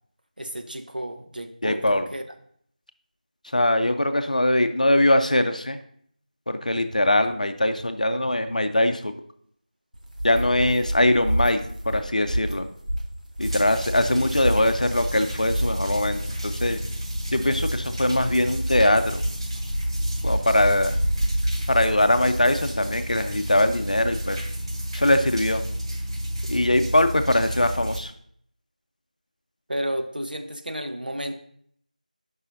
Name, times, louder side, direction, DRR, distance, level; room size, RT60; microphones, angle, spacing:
voice 1, 0.4-2.2 14.1-14.3 29.7-31.3, right 1 dB, 80° right, 6 dB, 0.9 m, -32 dB
voice 2, 1.6-2.0 3.5-5.8 6.5-9.1 10.2-12.7 13.4-16.8 17.3-19.2 20.2-21.0 21.7-24.4 24.9-25.6 26.5-28.1, left 1 dB, 60° left, 8 dB, 0.6 m, -22 dB
sound 1, 9.9-22.3, right 1 dB, 60° right, 1.3 m, -29 dB
sound 2, 13.4-28.0, equal, 35° right, 1.3 m, -31 dB
11.0 x 5.6 x 2.7 m, 0.65 s
figure-of-eight pair, 170°, 5 cm